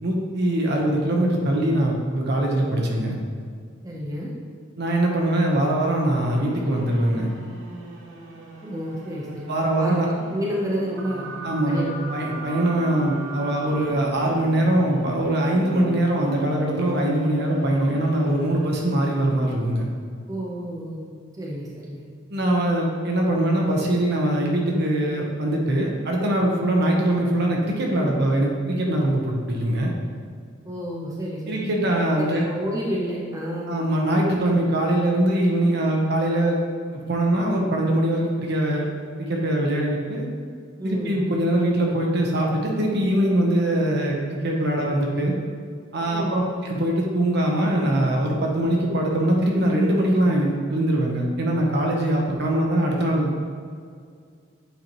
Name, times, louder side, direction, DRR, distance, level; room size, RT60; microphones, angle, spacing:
voice 1, 0.0-3.2 4.8-7.3 9.5-10.1 11.4-11.8 12.1-19.9 22.3-29.9 31.5-32.4 33.7-36.6 36.9-38.9 39.2-40.2 40.8-45.3 45.9-53.3, right 1 dB, 55° right, -1 dB, 1.1 m, -22 dB
voice 2, 3.8-4.3 8.6-9.5 9.8-9.9 10.3-11.2 11.6-11.9 12.4-12.5 20.3-21.0 21.4-22.1 30.6-31.6 32.2-34.1 40.8-41.3 46.1-46.4, equal, 15° right, -4 dB, 0.8 m, -30 dB
sound 1, 6.2-18.9, right 1 dB, 85° right, 1.2 m, -36 dB
8.3 x 4.4 x 3.1 m, 2.1 s
head